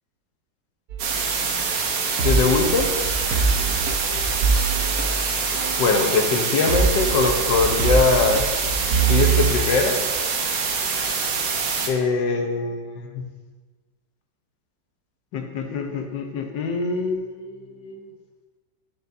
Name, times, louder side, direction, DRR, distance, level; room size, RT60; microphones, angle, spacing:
sound 1, 0.9-6.4 6.7-9.5, right 5 dB, 65° right, 1.4 m, -24 dB
sound 2, 1.0-11.9, right 5 dB, 85° right, 1.6 m, -25 dB
voice 1, 2.2-2.9 5.8-8.4 9.1-10.0 11.9-13.2 15.3-18.0, left 4 dB, 80° left, 4 dB, 1.5 m, -22 dB
11.5 x 6.6 x 2.6 m, 1.4 s
omnidirectional pair, 1.9 m